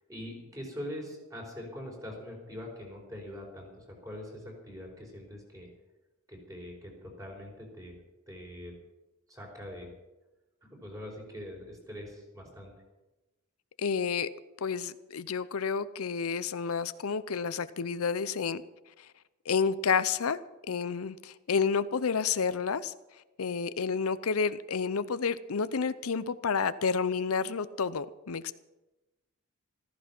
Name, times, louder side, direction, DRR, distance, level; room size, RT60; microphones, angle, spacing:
voice 1, 0.1-5.7 6.3-8.0 8.3-8.7 9.3-9.9 10.6-12.7, left 1 dB, 15° right, 0 dB, 4.6 m, -43 dB
voice 2, 13.8-14.3 14.6-18.6 19.0-19.1 19.5-20.4 20.7-22.9 23.4-28.5, left 5 dB, 85° left, 14 dB, 0.6 m, -30 dB
14.5 x 14.5 x 6.0 m, 1.1 s
head